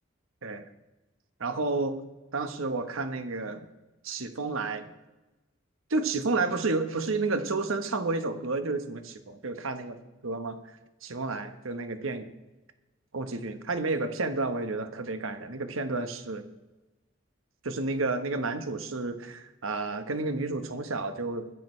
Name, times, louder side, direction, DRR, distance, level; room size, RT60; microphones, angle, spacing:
voice 1, 1.4-2.0 2.3-3.7 4.0-4.9 5.9-10.6 11.0-12.3 13.1-16.4 17.6-21.5, right 3 dB, 85° right, 8 dB, 1.3 m, -31 dB
21.0 x 11.0 x 3.3 m, 1.1 s
head